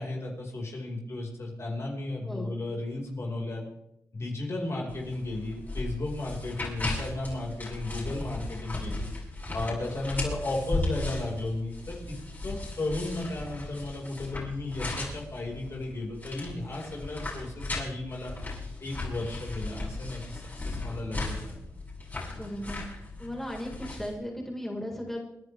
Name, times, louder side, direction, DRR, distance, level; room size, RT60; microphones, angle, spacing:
voice 1, 0.0-3.6 4.1-9.1 9.5-12.2 12.4-18.3 18.8-21.6, left 2 dB, 45° left, -1 dB, 5.2 m, -34 dB
voice 2, 2.2-2.5 22.3-22.8 23.2-25.2, equal, 5° left, -1 dB, 4.9 m, -36 dB
sound 1, 4.9-24.1, left 2 dB, 30° left, 7.6 m, -36 dB
29.5 x 10.5 x 3.5 m, 0.82 s
cardioid pair, 80°, 6 cm